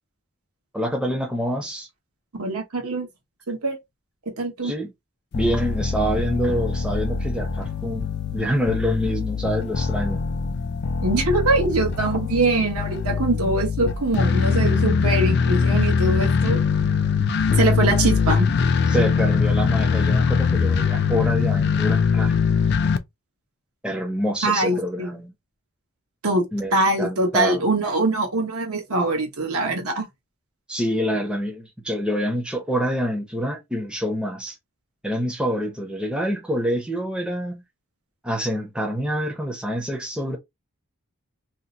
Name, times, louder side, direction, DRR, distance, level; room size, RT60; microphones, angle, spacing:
voice 1, 0.7-1.9 4.6-4.9 5.3-10.2 18.9-22.4 23.8-25.3 26.5-27.6 30.7-34.6 35.0-37.6 38.2-40.4, equal, 5° right, 0.5 m, -26 dB
voice 2, 2.3-3.1 3.5-3.8 4.4-4.7 11.0-16.6 17.5-18.5 24.4-25.1 26.2-30.1, right 2 dB, 85° right, 1.1 m, -23 dB
sound 1, 5.3-23.0, left 5 dB, 50° left, 0.3 m, -22 dB
2.8 x 2.0 x 3.7 m
head